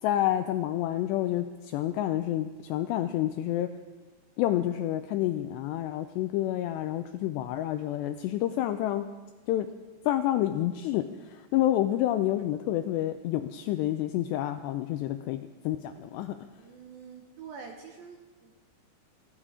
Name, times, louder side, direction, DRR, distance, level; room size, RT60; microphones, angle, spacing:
voice 1, 0.0-3.7 4.4-9.1 9.5-9.7 10.0-16.7, left 13 dB, 85° left, 9 dB, 2.4 m, -29 dB
voice 2, 16.6-18.5, right 6 dB, 70° right, 3 dB, 2.3 m, -46 dB
17.5 x 15.5 x 5.0 m, 1.3 s
omnidirectional pair, 5.5 m